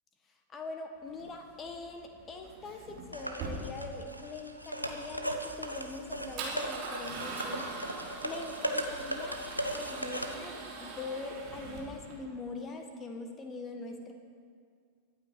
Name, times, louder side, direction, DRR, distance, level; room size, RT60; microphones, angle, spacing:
voice 1, 0.5-9.4 9.7-14.1, left 3 dB, 25° left, 5 dB, 1.6 m, -43 dB
Male speech man speaking / Car / Engine starting, 1.1-12.1, right 3 dB, 40° right, 3.6 m, -43 dB
sound 1, 3.1-10.3, right 1 dB, 90° right, 1.1 m, -38 dB
23.5 x 8.9 x 4.9 m, 2.1 s
figure-of-eight pair, 90°, 0 cm